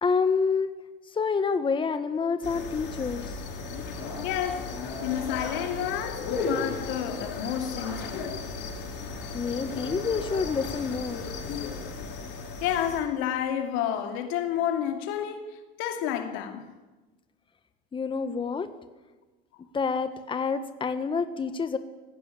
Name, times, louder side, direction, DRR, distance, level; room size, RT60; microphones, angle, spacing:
voice 1, 0.0-0.7 1.1-3.3 9.3-11.2 17.9-18.7 19.7-21.8, left 5 dB, 25° left, 1.4 m, -28 dB
sound 1, 2.4-13.0, left 4 dB, 65° left, 6.3 m, -35 dB
voice 2, 4.2-4.8 5.0-8.3 12.6-16.7, left 10 dB, 80° left, 2.7 m, -30 dB
19.0 x 16.0 x 9.8 m
cardioid pair, 110°, 20 cm